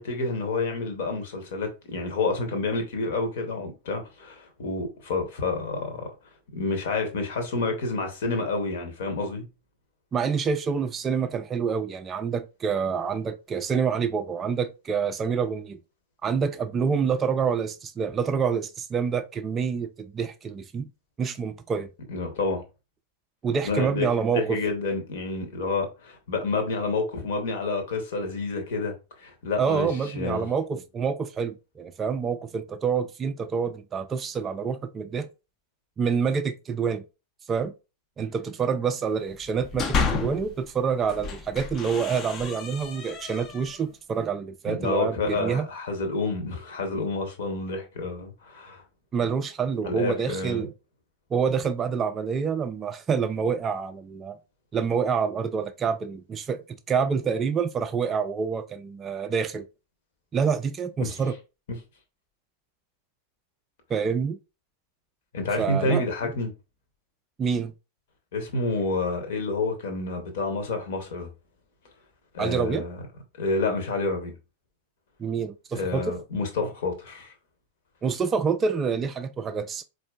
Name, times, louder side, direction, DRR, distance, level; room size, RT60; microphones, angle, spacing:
voice 1, 0.0-6.1 6.5-9.4 22.1-22.6 23.6-24.1 24.3-30.5 44.7-48.8 49.8-50.6 61.0-61.2 65.3-66.5 68.3-71.3 72.3-73.0 73.4-74.3 75.7-77.3, left 3 dB, 55° left, 0.9 m, -29 dB
voice 2, 10.1-15.8 16.2-20.9 21.2-21.9 23.4-24.6 29.6-35.3 36.0-37.0 37.5-37.7 38.2-45.7 49.1-50.7 51.3-54.4 54.7-59.7 60.3-61.3 63.9-64.4 65.6-66.3 67.4-67.7 72.4-72.8 75.2-76.1 78.0-79.8, right 6 dB, 20° right, 0.3 m, -27 dB
sound 1, 39.4-40.5 41.0-43.8, left 5 dB, 30° left, 0.5 m, -31 dB
4.3 x 2.5 x 2.3 m
figure-of-eight pair, 90°, 0 cm